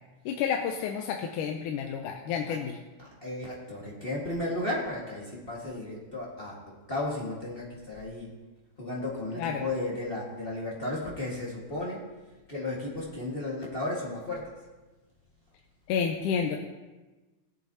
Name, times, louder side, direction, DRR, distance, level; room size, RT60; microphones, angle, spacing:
voice 1, 0.3-2.8 9.4-9.6 15.9-16.6, left 7 dB, 85° left, 2 dB, 2.2 m, -30 dB
voice 2, 3.0-8.3 8.8-12.1 12.5-14.5, left 2 dB, 25° left, -4 dB, 1.3 m, -34 dB
19.0 x 8.2 x 2.8 m, 1.2 s
omnidirectional pair, 3.6 m